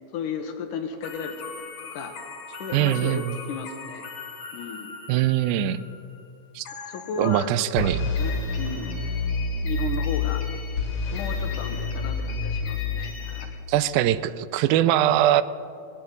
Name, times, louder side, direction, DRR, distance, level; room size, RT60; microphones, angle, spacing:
voice 1, 0.1-1.5 1.8-2.2 2.5-4.1 4.5-4.9 6.9-7.5 7.8-9.0 9.6-10.6 11.1-13.6, left 6 dB, 70° left, 6 dB, 2.5 m, -34 dB
sound 1, 1.0-6.0 6.7-7.4 7.8-13.4, left 3 dB, 50° left, 2.8 m, -30 dB
voice 2, 2.7-3.4 5.1-5.9 6.6-6.7 7.2-8.0 13.7-15.4, right 13 dB, 90° right, 15 dB, 2.4 m, -22 dB
19.5 x 17.0 x 4.0 m, 2.5 s
omnidirectional pair, 4.1 m